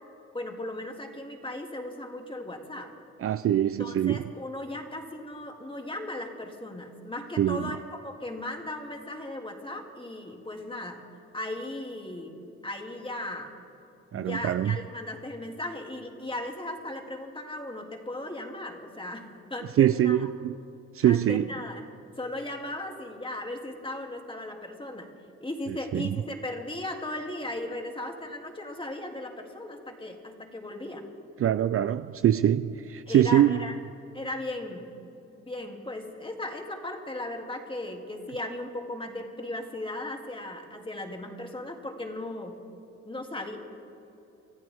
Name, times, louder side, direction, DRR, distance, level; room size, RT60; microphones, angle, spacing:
voice 1, 0.3-2.9 3.8-11.0 11.3-13.5 14.1-20.3 21.0-21.9 22.2-25.1 25.4-31.0 33.1-33.8 34.1-34.9 35.4-42.6 43.0-43.6, left 1 dB, 15° left, 2.3 m, -37 dB
voice 2, 3.2-4.2 7.4-7.7 14.1-14.8 19.8-20.6 20.9-21.5 25.9-26.1 31.4-33.6, right 11 dB, 50° right, 0.4 m, -23 dB
26.0 x 13.5 x 3.6 m
supercardioid pair, 60°, 29 cm